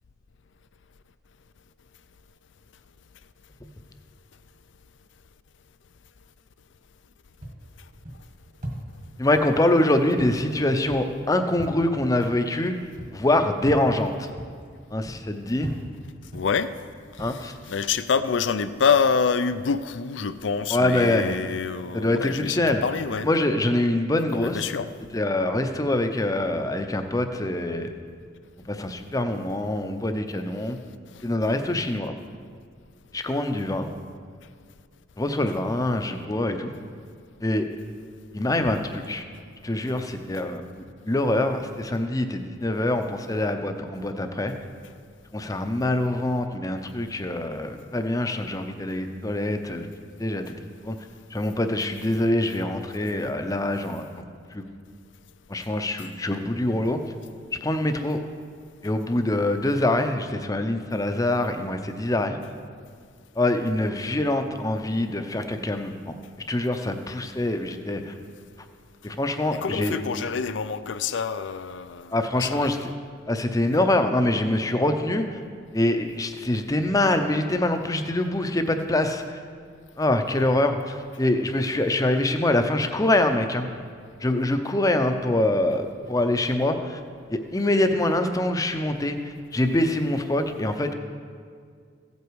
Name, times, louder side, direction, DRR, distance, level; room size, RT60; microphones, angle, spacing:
sound 1, 7.4-17.3, right 1 dB, 45° right, 1.9 m, -40 dB
voice 1, 9.2-12.7 13.1-14.3 14.9-15.7 17.2-17.5 20.7-21.4 21.9-22.8 23.2-24.6 25.1-27.9 28.7-30.8 31.2-32.2 33.1-33.9 35.2-36.7 37.4-37.7 38.3-39.2 39.6-40.6 41.1-44.5 45.3-49.9 50.2-51.0 51.3-54.1 54.5-54.6 55.5-57.0 57.6-58.2 58.8-62.4 63.4-66.1 66.5-68.1 69.0-70.0 72.1-72.8 73.3-75.4 75.7-79.4 80.0-83.7 84.2-87.0 87.3-90.9, left 1 dB, 20° left, 0.6 m, -24 dB
voice 2, 16.3-16.7 17.2-23.3 24.3-24.9 56.0-56.1 69.5-72.9, left 6 dB, 70° left, 0.5 m, -26 dB
15.5 x 8.3 x 4.7 m
head